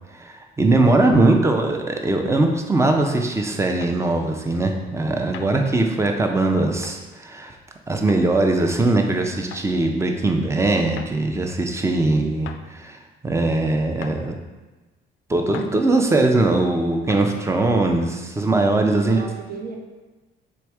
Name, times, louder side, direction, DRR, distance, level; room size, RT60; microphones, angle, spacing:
voice 1, 0.1-7.5 7.9-14.4 15.3-19.2, right 2 dB, 15° right, 3 dB, 0.6 m, -20 dB
sound 1, 3.8-4.0 5.3-5.5 6.8-7.0 8.1-8.2 9.5-9.7 11.0-11.1 12.5-12.6 14.0-14.2 15.5-15.7 17.1-17.3, left 8 dB, 80° left, 0.4 m, -38 dB
voice 2, 19.0-19.8, right 5 dB, 50° right, 0 dB, 0.8 m, -35 dB
3.5 x 3.2 x 4.7 m, 1.2 s
cardioid pair, 90°, 20 cm